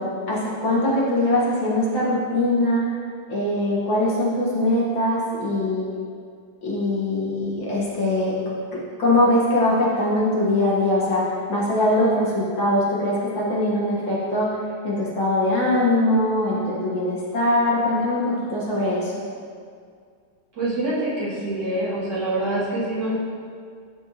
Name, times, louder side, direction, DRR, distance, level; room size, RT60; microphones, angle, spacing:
voice 1, 0.0-2.8 3.3-5.9 6.6-8.3 8.7-11.2 11.5-14.5 14.8-19.1, left 1 dB, 65° left, -6 dB, 2.2 m, -22 dB
voice 2, 20.6-23.1, right 1 dB, 55° right, -11 dB, 2.8 m, -25 dB
12.5 x 4.5 x 2.9 m, 2.2 s
omnidirectional pair, 2.3 m